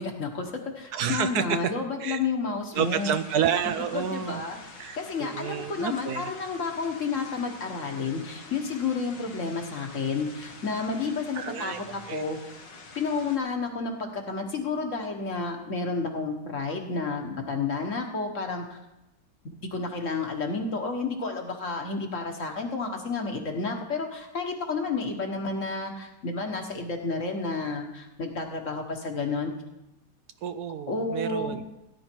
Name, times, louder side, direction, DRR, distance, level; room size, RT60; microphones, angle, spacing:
voice 1, 0.0-3.2 3.9-4.6 5.0-12.4 12.9-18.8 19.7-29.5 30.9-31.6, left 4 dB, 50° left, 3 dB, 1.6 m, -31 dB
voice 2, 0.9-1.6 2.0-2.2 2.7-4.4 4.8-6.3 11.3-11.8 12.1-12.2 30.4-31.6, right 9 dB, 70° right, 10 dB, 1.1 m, -29 dB
sound 1, 2.7-13.4, left 3 dB, 85° left, 2.0 m, -47 dB
17.0 x 10.5 x 4.5 m, 0.95 s
omnidirectional pair, 1.9 m